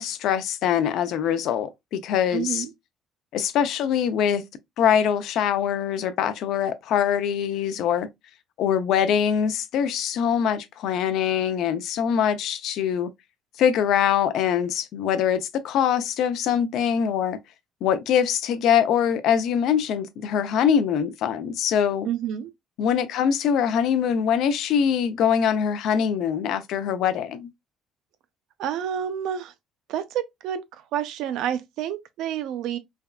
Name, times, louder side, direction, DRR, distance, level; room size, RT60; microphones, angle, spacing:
voice 1, 0.0-2.7 3.3-4.4 4.8-8.1 8.6-13.1 13.6-17.4 17.8-22.1 22.8-27.5, left 8 dB, 65° left, 0.4 m, -23 dB
voice 2, 2.3-2.7 22.0-22.5 28.6-29.5 29.9-30.6 30.9-32.8, right 9 dB, 70° right, 0.4 m, -29 dB
3.4 x 2.3 x 2.2 m
cardioid pair, 145°, 0 cm